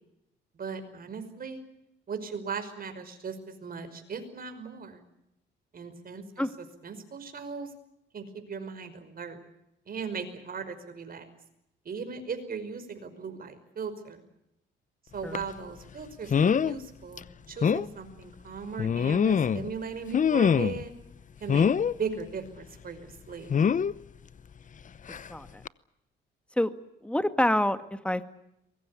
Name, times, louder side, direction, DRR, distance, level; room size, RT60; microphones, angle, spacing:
voice 1, 0.5-1.6 2.1-5.0 5.7-6.5 6.8-7.7 8.1-9.4 9.9-11.2 11.9-14.2 15.1-20.9 21.4-23.5, right 5 dB, 45° right, 9 dB, 5.5 m, -38 dB
sound 1, 15.3-15.5 16.3-16.8 17.2-17.3 17.6-17.9 18.8-19.7 20.1-20.9 21.5-21.9 23.5-23.9 25.1-25.3 25.7-25.8, left 7 dB, 40° left, 0.8 m, -24 dB
voice 2, 25.3-25.6 26.6-26.7 27.0-28.2, left 1 dB, 5° left, 10 dB, 1.9 m, -27 dB
24.0 x 21.5 x 8.5 m, 0.84 s
cardioid pair, 90°, 20 cm